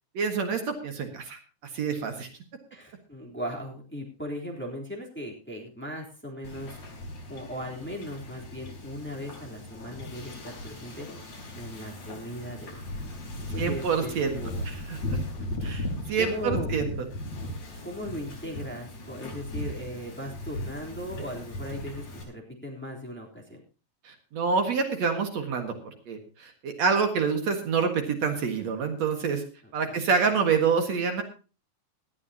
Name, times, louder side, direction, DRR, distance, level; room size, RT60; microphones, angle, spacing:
voice 1, 0.1-1.4 1.7-2.3 13.6-14.4 14.7-15.2 15.6-17.1 24.0-29.4 29.7-31.2, right 5 dB, 65° right, 5 dB, 2.9 m, -27 dB
voice 2, 2.7-6.8 7.3-11.1 11.5-12.8 13.5-14.6 15.6-16.7 17.8-23.6 29.6-30.1, equal, 5° left, -1 dB, 3.2 m, -38 dB
Wind / Ocean, 6.4-22.2, left 1 dB, 75° left, 5.8 m, -37 dB
18.5 x 13.0 x 2.9 m, 0.35 s
omnidirectional pair, 3.3 m